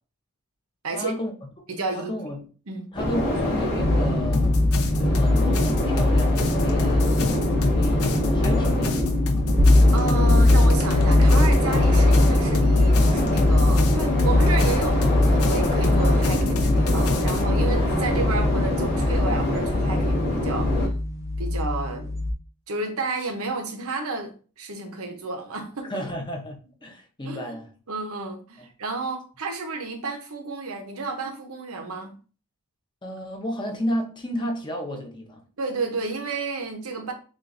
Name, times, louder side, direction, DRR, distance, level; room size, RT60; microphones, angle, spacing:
voice 1, 0.9-1.3 1.9-2.4 2.9-4.6 5.0-7.1 7.6-9.4 25.8-26.6 26.8-27.7 28.6-28.7 33.0-35.4, equal, 20° left, 0.8 m, -32 dB
voice 2, 1.8-2.1 2.7-2.9 9.9-20.8 21.4-22.2 22.7-24.3 24.6-25.9 27.2-27.5 27.9-32.1 35.6-37.1, right 3 dB, 75° right, 0.9 m, -31 dB
sound 1, 2.9-20.9, left 1 dB, 45° left, 2.3 m, -25 dB
sound 2, 3.8-22.3, left 2 dB, 15° right, 0.5 m, -22 dB
sound 3, 4.3-17.4, left 2 dB, 80° left, 0.8 m, -29 dB
7.3 x 2.5 x 2.6 m
head